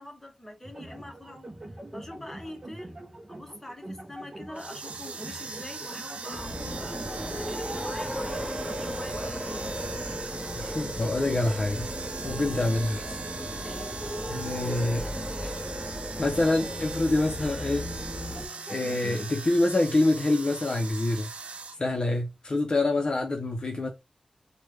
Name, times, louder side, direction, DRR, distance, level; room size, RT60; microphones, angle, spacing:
voice 1, 0.0-2.9 3.3-7.0 7.3-9.8 10.3-10.4 12.2-12.5 13.6-13.9, left 1 dB, 10° left, 0.9 m, -44 dB
sound 1, 0.6-13.5 14.4-19.3, right 1 dB, 30° right, 0.5 m, -46 dB
sound 2, 4.5-21.8, right 4 dB, 80° right, 0.4 m, -40 dB
sound 3, 6.3-18.5, equal, 15° right, 1.1 m, -35 dB
voice 2, 10.5-11.9 12.2-13.1 14.3-15.0 15.4-15.5 16.2-17.9 18.7-21.3 21.8-23.9, left 2 dB, 45° left, 0.5 m, -26 dB
3.2 x 2.2 x 3.1 m
wide cardioid pair, 100°, 2 cm